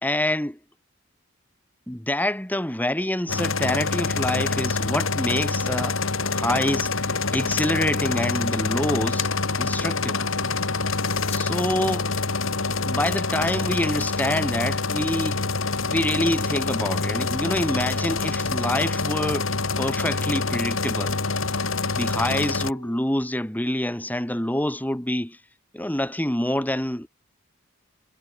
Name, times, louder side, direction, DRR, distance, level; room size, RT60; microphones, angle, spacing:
voice 1, 0.0-0.6 1.9-6.0 6.2-9.3 9.6-10.2 11.3-12.1 12.7-15.4 15.8-19.5 19.8-21.2 21.9-25.4 25.7-27.1, left 1 dB, 10° left, 1.9 m, -26 dB
sound 1, 3.3-22.7, left 3 dB, 85° left, 2.5 m, -26 dB
Wind instrument woodwind instrument, 5.8-23.2, left 2 dB, 60° left, 7.5 m, -43 dB
head